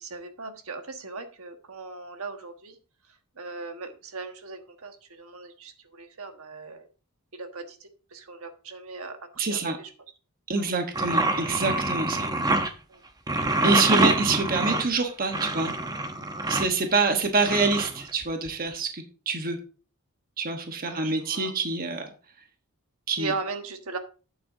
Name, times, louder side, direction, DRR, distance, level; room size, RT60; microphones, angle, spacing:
voice 1, 0.0-2.8 3.4-6.9 7.3-9.2 9.4-9.9 10.6-10.7 12.9-13.0 16.4-16.6 20.8-21.5 23.1-24.0, right 4 dB, 70° right, 6 dB, 1.4 m, -38 dB
voice 2, 9.4-9.8 10.5-12.3 13.6-15.7 16.5-19.6 20.4-22.1 23.1-23.3, right 4 dB, 40° right, 5 dB, 1.1 m, -26 dB
sound 1, 10.9-12.7 13.3-16.7 17.4-18.5, right 2 dB, 15° right, 0.8 m, -26 dB
11.0 x 8.9 x 2.7 m, 0.35 s
head